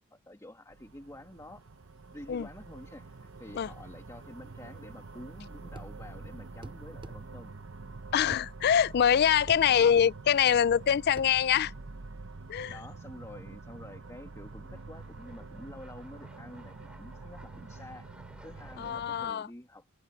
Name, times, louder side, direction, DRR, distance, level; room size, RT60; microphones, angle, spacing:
voice 1, 0.0-1.6 2.1-7.5 9.6-10.0 12.7-20.0, left 1 dB, 15° left, 2.2 m, -49 dB
sound 1, 0.7-19.3, right 3 dB, 60° right, 0.9 m, -46 dB
sound 2, 5.7-6.0 6.6-7.2 8.3-8.5 9.5-9.7 10.0-10.1 11.2-11.3, right 2 dB, 25° right, 0.7 m, -45 dB
voice 2, 8.1-11.7 12.5-12.8 18.8-19.5, left 8 dB, 50° left, 0.3 m, -24 dB
sound 3, 13.6-19.1, right 1 dB, 5° right, 3.2 m, -58 dB
head